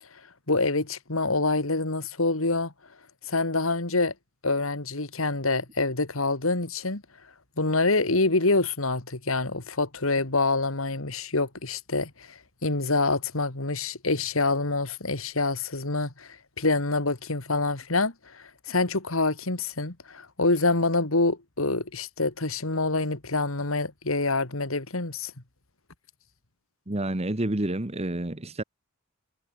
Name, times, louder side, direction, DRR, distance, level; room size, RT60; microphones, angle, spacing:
voice 1, 0.5-2.7 3.2-4.1 4.4-7.0 7.6-25.3, left 3 dB, 75° left, 2.7 m, -26 dB
voice 2, 26.9-28.6, right 1 dB, 30° right, 1.4 m, -29 dB
head